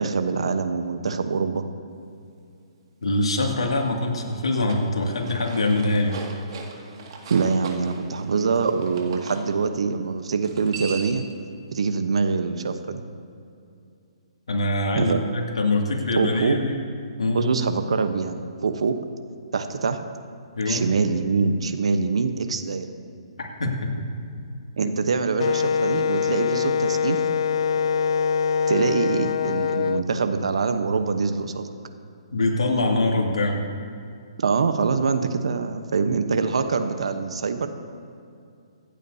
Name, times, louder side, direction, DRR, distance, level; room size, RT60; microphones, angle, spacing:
voice 1, 0.0-1.6 7.3-11.3 11.7-13.0 14.9-15.2 16.2-16.6 17.3-19.0 19.5-20.0 20.7-22.9 24.8-27.2 28.7-31.7 34.4-37.7, right 5 dB, 75° right, 8 dB, 1.0 m, -24 dB
voice 2, 3.0-6.2 14.5-16.8 17.2-17.5 20.6-20.8 23.4-24.0 24.8-24.9 32.3-33.6, left 2 dB, 80° left, 0 dB, 2.3 m, -24 dB
sound 1, 4.5-9.4 10.4-11.3, right 4 dB, 55° right, 2.0 m, -39 dB
Wind instrument woodwind instrument, 25.4-30.0, left 6 dB, 60° left, 0.4 m, -23 dB
25.5 x 8.7 x 2.8 m, 2.5 s
hypercardioid pair, 140°, 3 cm